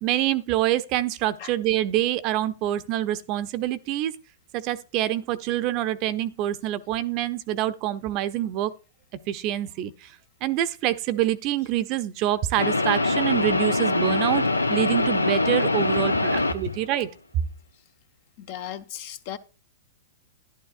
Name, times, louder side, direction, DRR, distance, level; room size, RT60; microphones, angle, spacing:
voice 1, 0.0-4.1 4.5-8.7 9.3-10.1 10.4-17.1, right 13 dB, 40° right, 0.6 m, -26 dB
sound 1, 12.6-16.8, left 2 dB, 85° left, 0.5 m, -23 dB
voice 2, 18.4-19.4, left 10 dB, 45° left, 0.7 m, -36 dB
11.5 x 11.0 x 2.5 m
figure-of-eight pair, 105°, 0 cm